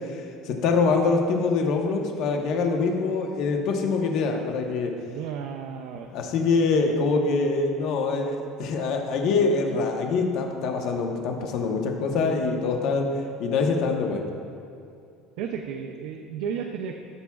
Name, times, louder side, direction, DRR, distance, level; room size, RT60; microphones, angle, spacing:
voice 1, 0.4-4.9 6.1-13.1 13.4-14.2, left 4 dB, 50° left, 3 dB, 0.9 m, -24 dB
voice 2, 5.1-6.1 15.4-16.9, right 7 dB, 70° right, 3 dB, 0.5 m, -33 dB
15.0 x 7.2 x 2.3 m, 2.5 s
cardioid pair, 165°, 0 cm